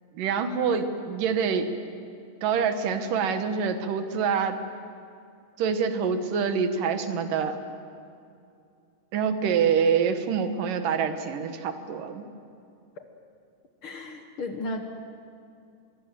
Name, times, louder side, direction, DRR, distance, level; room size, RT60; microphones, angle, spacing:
voice 1, 0.1-1.7 2.4-4.6 5.6-7.6 9.1-12.2, right 6 dB, 85° right, 8 dB, 3.0 m, -26 dB
voice 2, 13.8-14.8, left 2 dB, 50° left, 5 dB, 1.8 m, -34 dB
25.5 x 22.0 x 7.6 m, 2.5 s
omnidirectional pair, 3.7 m